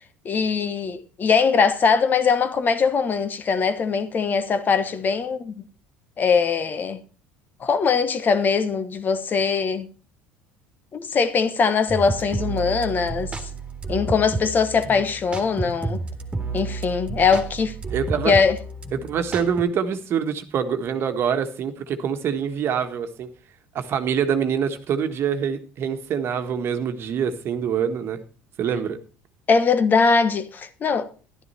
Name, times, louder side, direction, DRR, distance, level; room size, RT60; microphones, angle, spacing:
voice 1, 0.2-5.5 6.2-7.0 7.6-9.9 10.9-13.4 13.9-16.0 16.5-17.7 18.2-18.6 29.5-31.1, left 5 dB, 35° left, 1.2 m, -21 dB
sound 1, 11.9-19.6, right 2 dB, 20° right, 2.1 m, -31 dB
voice 2, 17.9-18.3 18.9-23.3 23.7-28.2 28.6-29.0, right 7 dB, 50° right, 1.5 m, -25 dB
11.5 x 11.0 x 4.3 m
supercardioid pair, 85°, 5 cm